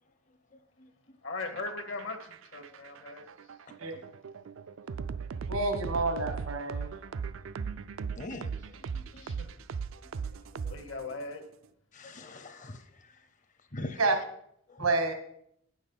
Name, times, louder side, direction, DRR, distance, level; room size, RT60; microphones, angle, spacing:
voice 1, 0.5-0.9 2.7-2.8 8.1-9.3 10.6-10.8 11.9-13.1 13.7-14.0 14.7-14.8, left 1 dB, 35° left, 0.8 m, -44 dB
voice 2, 1.2-3.2 9.1-9.6 10.7-11.4, left 3 dB, 60° left, 1.2 m, -39 dB
sound 1, 1.5-11.2, right 5 dB, 65° right, 0.4 m, -38 dB
voice 3, 5.5-7.0 14.0-14.1 14.8-15.1, right 3 dB, 85° right, 1.2 m, -28 dB
9.1 x 6.4 x 5.4 m
head